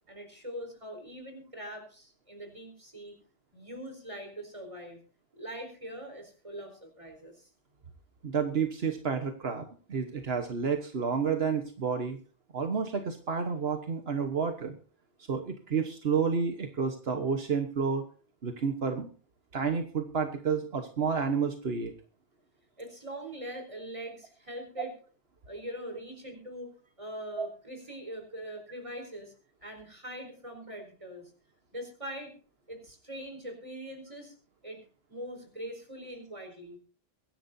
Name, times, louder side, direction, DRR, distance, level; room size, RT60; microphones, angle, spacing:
voice 1, 0.1-3.2 3.5-5.0 5.3-7.5 22.8-24.9 25.4-26.7 27.0-29.3 29.6-31.3 31.7-32.3 32.7-34.3 34.6-34.8 35.1-36.8, equal, 30° right, 4 dB, 4.5 m, -42 dB
voice 2, 8.2-12.2 12.5-14.8 15.3-18.1 18.4-19.1 19.5-21.9 24.8-24.9 27.4-27.5, right 6 dB, 75° right, 6 dB, 1.5 m, -30 dB
23.5 x 11.0 x 2.7 m, 0.39 s
omnidirectional pair, 1.0 m